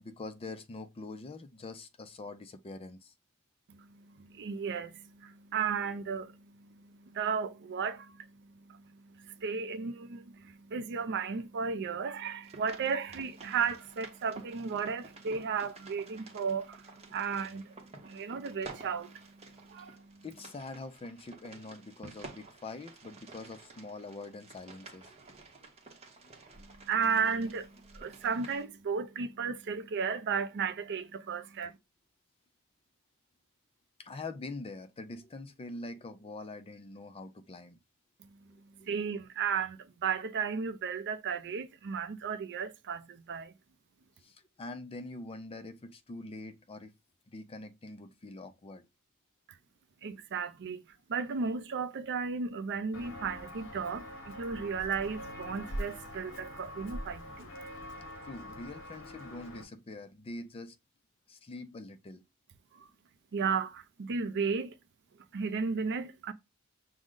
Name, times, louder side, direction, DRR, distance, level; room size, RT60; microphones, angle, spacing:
voice 1, 0.0-3.1 19.8-19.9 20.2-25.3 26.2-26.7 34.0-37.8 38.5-38.9 44.2-46.9 47.3-48.9 58.2-60.8 61.3-62.2, left 2 dB, 25° left, 0.4 m, -44 dB
voice 2, 3.7-20.2 26.6-31.8 38.2-43.5 50.0-50.8 51.1-57.5 62.7-62.9 63.3-64.7 65.3-66.3, right 5 dB, 55° right, 0.4 m, -35 dB
sound 1, 12.4-28.7, right 3 dB, 30° right, 0.8 m, -52 dB
Walk footsteps, 52.9-59.6, equal, 60° left, 1.0 m, -43 dB
6.2 x 2.1 x 3.7 m
head